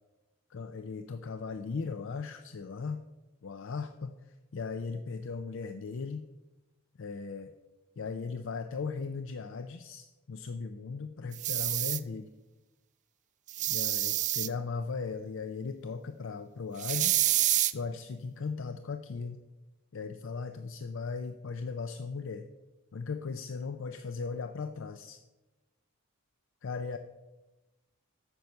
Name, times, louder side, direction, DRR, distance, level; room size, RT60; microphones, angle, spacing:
voice 1, 0.5-3.0 3.4-6.2 7.0-7.5 8.0-12.3 13.7-17.3 17.7-19.4 19.9-22.5 22.9-25.2 26.6-27.0, left 4 dB, 60° left, 8 dB, 0.5 m, -37 dB
sound 1, 11.3-12.0 13.5-14.5 16.8-17.7, right 14 dB, 35° right, 0.4 m, -28 dB
8.9 x 7.0 x 6.4 m, 1.1 s
head